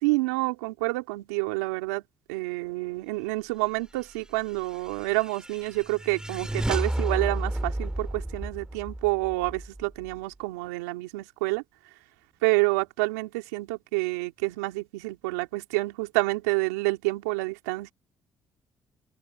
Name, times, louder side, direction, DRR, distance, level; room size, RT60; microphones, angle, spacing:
voice 1, 0.0-2.0 2.3-11.6 12.4-17.9, right 24 dB, 90° right, 3.2 m, -28 dB
sound 1, 4.5-10.2, right 1 dB, 10° right, 3.7 m, -32 dB
open air
hypercardioid pair, 50°, 8 cm